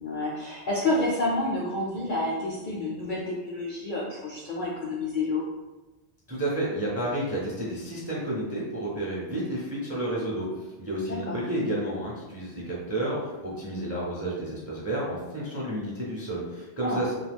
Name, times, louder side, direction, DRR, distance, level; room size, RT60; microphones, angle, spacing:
voice 1, 0.0-5.4 11.1-11.4 16.8-17.0, left 2 dB, 60° left, -3 dB, 0.5 m, -29 dB
voice 2, 6.3-10.5 10.8-17.1, right 1 dB, 20° right, -5 dB, 0.4 m, -31 dB
2.8 x 2.3 x 3.4 m, 1.2 s
omnidirectional pair, 1.2 m